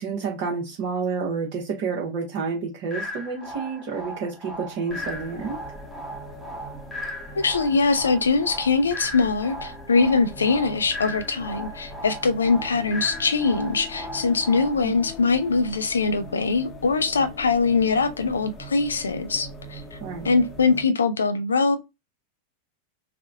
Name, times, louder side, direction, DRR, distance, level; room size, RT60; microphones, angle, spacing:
voice 1, 0.0-5.6 14.8-15.0 20.0-20.3, right 5 dB, 45° right, 1.0 m, -29 dB
sound 1, 2.9-14.9, equal, ahead, 1.1 m, -37 dB
sound 2, 4.9-20.9, left 1 dB, 20° left, 0.9 m, -42 dB
voice 2, 7.3-20.0 20.2-21.8, left 4 dB, 70° left, 0.5 m, -22 dB
3.6 x 2.2 x 3.4 m
figure-of-eight pair, 90°, 0 cm